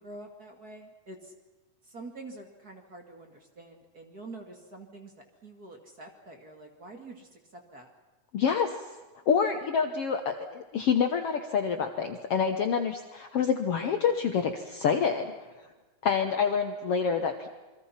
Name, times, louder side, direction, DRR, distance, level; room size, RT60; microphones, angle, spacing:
voice 1, 0.0-1.3 1.8-5.1 5.4-7.9, right 2 dB, 30° right, 3 dB, 2.3 m, -46 dB
voice 2, 8.3-8.7 9.3-15.3 16.0-17.5, left 6 dB, 60° left, 6 dB, 1.7 m, -27 dB
28.0 x 23.0 x 5.8 m, 1.2 s
omnidirectional pair, 3.8 m